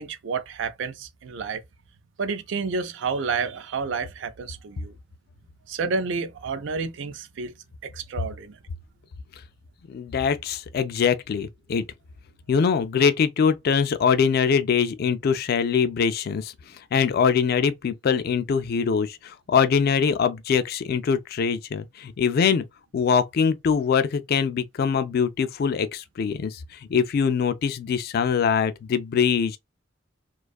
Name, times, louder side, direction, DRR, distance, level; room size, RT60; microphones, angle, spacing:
voice 1, 0.0-1.6 2.2-4.9 5.7-7.5 7.8-8.6, right 4 dB, 70° right, 0.4 m, -30 dB
voice 2, 9.9-11.8 12.5-16.5 16.9-22.6 22.9-26.6 26.9-29.6, left 6 dB, 50° left, 0.3 m, -23 dB
2.5 x 2.3 x 2.3 m
head